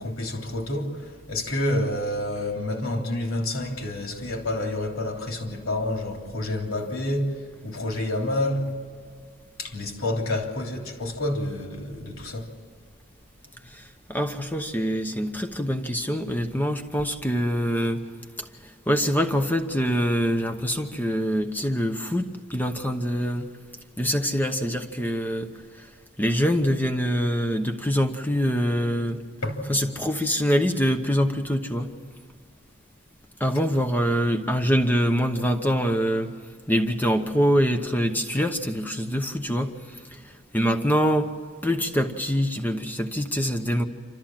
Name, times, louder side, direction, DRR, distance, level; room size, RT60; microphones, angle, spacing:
voice 1, 0.0-8.7 9.6-12.5 29.4-29.6 33.8-33.9, left 1 dB, 80° left, 3.3 m, -29 dB
voice 2, 14.1-18.0 18.6-23.5 24.0-25.5 25.8-25.9 26.2-29.2 29.7-31.9 33.4-36.3 36.7-39.7 40.1-40.2 40.5-41.3 41.6-43.8, equal, 10° left, 0.9 m, -24 dB
27.5 x 14.0 x 7.4 m
head